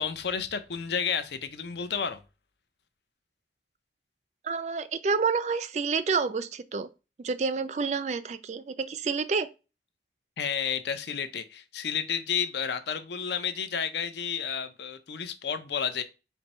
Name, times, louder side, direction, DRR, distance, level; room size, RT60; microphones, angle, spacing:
voice 1, 0.0-2.2 10.4-16.0, left 7 dB, 75° left, 0.6 m, -31 dB
voice 2, 4.4-6.9 7.2-9.5, right 5 dB, 40° right, 0.3 m, -29 dB
4.5 x 2.6 x 4.1 m
head